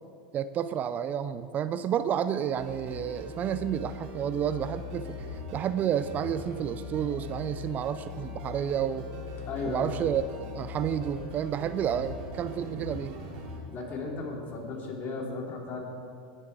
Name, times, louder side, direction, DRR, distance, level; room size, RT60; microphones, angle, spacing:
voice 1, 0.3-5.2 5.5-9.1 9.7-10.2 10.5-13.1, right 9 dB, 35° right, 13 dB, 0.4 m, -30 dB
sound 1, 2.6-13.6, left 3 dB, 55° right, 2.6 m, -40 dB
voice 2, 9.4-9.9 13.7-15.8, left 3 dB, 40° left, -1 dB, 3.3 m, -35 dB
19.0 x 7.6 x 4.8 m, 2.4 s
hypercardioid pair, 90°, 5 cm